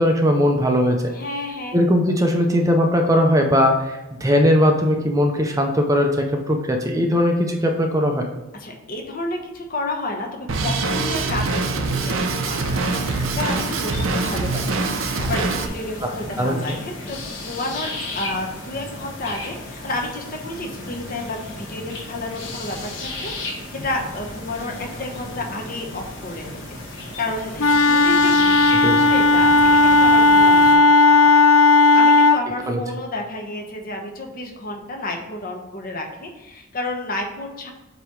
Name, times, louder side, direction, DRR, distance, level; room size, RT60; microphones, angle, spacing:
voice 1, 0.0-1.1 1.7-6.1 6.5-8.3 16.0-16.1 16.4-16.6 28.8-29.1 32.7-32.8, equal, 15° right, 3 dB, 0.5 m, -19 dB
voice 2, 1.1-1.8 8.5-11.6 11.8-26.8 27.2-31.5 31.9-37.7, left 2 dB, 40° left, 1 dB, 1.0 m, -31 dB
Drum kit, 10.5-15.7, right 3 dB, 75° right, 0.7 m, -24 dB
sound 1, 12.6-30.7, left 2 dB, 60° left, 1.5 m, -34 dB
Wind instrument woodwind instrument, 27.6-32.4, left 3 dB, 90° left, 0.4 m, -14 dB
8.0 x 3.0 x 4.7 m, 1.0 s
head